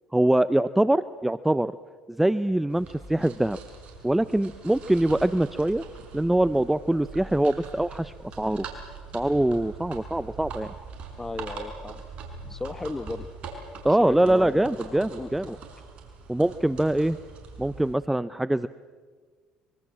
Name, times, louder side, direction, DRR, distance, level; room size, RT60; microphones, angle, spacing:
voice 1, 0.1-1.7 2.1-3.6 4.0-5.8 6.1-8.6 9.1-10.7 13.8-15.6 16.3-17.2 17.6-18.7, right 1 dB, 5° right, 15 dB, 0.6 m, -23 dB
sound 1, 2.7-18.0, right 4 dB, 50° right, 5.6 m, -42 dB
voice 2, 11.2-12.0 12.5-13.3 14.0-14.7 15.2-15.6, left 2 dB, 15° left, 13 dB, 1.5 m, -35 dB
25.0 x 24.0 x 7.5 m, 1.5 s
supercardioid pair, 80°, 3 cm